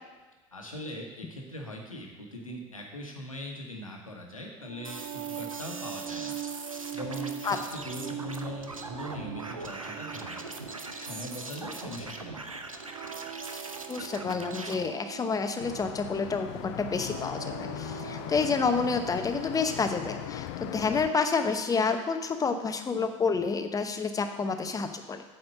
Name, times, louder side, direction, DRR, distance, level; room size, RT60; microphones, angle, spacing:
voice 1, 0.5-10.6 10.9-12.4, equal, 85° left, 1 dB, 1.3 m, -41 dB
sound 1, 4.6-20.6, right 11 dB, 45° right, 0.6 m, -42 dB
sound 2, 4.8-14.7, right 2 dB, 90° right, 0.6 m, -41 dB
voice 2, 13.9-25.2, left 5 dB, 20° left, 7 dB, 0.8 m, -29 dB
sound 3, 15.6-21.1, left 13 dB, 55° left, 0.4 m, -39 dB
8.7 x 4.4 x 6.8 m, 1.3 s
figure-of-eight pair, 70°, 17 cm